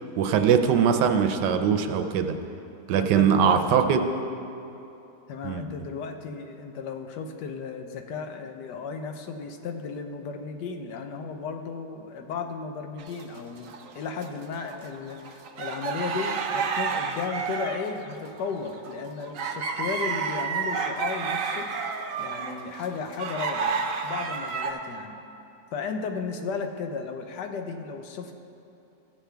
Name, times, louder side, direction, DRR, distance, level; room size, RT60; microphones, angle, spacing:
voice 1, 0.2-2.4 2.9-4.0 5.4-5.6, right 7 dB, 80° right, 7 dB, 1.2 m, -21 dB
voice 2, 2.9-3.6 5.3-13.7 13.9-21.7 22.2-25.2 25.7-28.4, left 5 dB, 75° left, 5 dB, 1.3 m, -34 dB
sound 1, 13.0-14.3 14.7-24.7, right 5 dB, 60° right, 0.9 m, -30 dB
15.0 x 7.3 x 3.4 m, 2.8 s
omnidirectional pair, 1.8 m